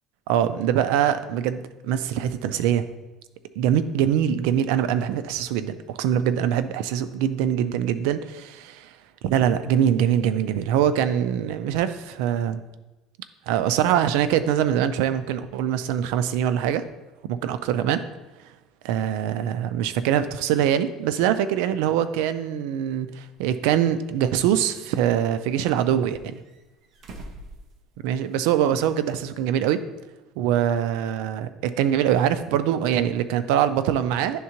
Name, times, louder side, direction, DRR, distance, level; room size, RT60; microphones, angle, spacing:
voice 1, 0.3-2.8 3.6-8.9 9.2-12.6 13.5-16.8 17.3-18.0 18.8-26.4 28.0-29.8 30.4-34.4, right 10 dB, 90° right, 12 dB, 0.4 m, -23 dB
sound 1, 23.3-23.4 24.3-25.2 26.1-28.4 28.7-28.8 30.4-30.5, right 1 dB, 40° right, 0.7 m, -46 dB
10.5 x 3.6 x 2.9 m, 1.1 s
cardioid pair, 155°, 0 cm